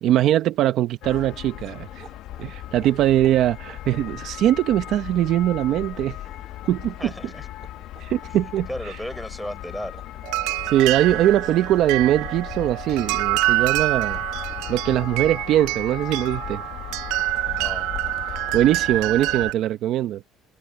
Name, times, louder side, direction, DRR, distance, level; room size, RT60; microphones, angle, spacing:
voice 1, 0.0-2.0 2.4-6.2 6.7-7.1 8.0-8.7 10.6-14.2 14.7-16.6 18.3-20.2, right 12 dB, 65° right, 1.0 m, -21 dB
sound 1, 1.0-19.5, left 13 dB, 70° left, 1.0 m, -37 dB
sound 2, 1.9-19.3, right 8 dB, 45° right, 4.2 m, -53 dB
voice 2, 7.0-7.5 8.7-10.0 17.5-17.9, equal, ahead, 4.1 m, -34 dB
sound 3, 10.2-19.5, right 20 dB, 85° right, 0.4 m, -26 dB
cardioid pair, 110°, 0 cm